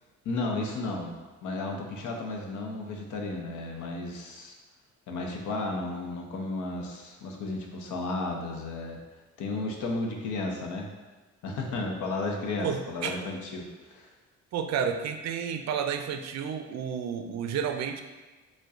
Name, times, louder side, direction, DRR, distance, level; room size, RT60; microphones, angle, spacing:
voice 1, 0.2-1.2 1.4-4.5 5.1-9.0 9.4-10.9 11.4-14.1, left 2 dB, 75° left, 1 dB, 0.8 m, -33 dB
voice 2, 12.6-13.2 14.5-18.0, right 7 dB, 60° right, 7 dB, 0.4 m, -31 dB
6.4 x 2.2 x 2.4 m, 1.3 s
cardioid pair, 90°, 30 cm